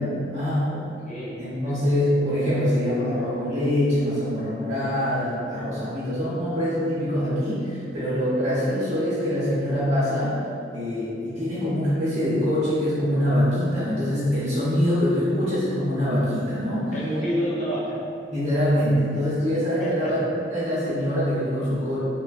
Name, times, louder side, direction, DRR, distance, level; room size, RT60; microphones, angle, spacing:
voice 1, 0.0-0.7 1.4-10.3 10.7-16.9 18.3-20.2 20.5-22.0, equal, 40° right, -10 dB, 0.6 m, -24 dB
voice 2, 0.6-1.7 16.9-18.0 19.8-20.1, equal, 40° left, -8 dB, 0.6 m, -29 dB
3.1 x 2.0 x 2.4 m, 2.5 s
head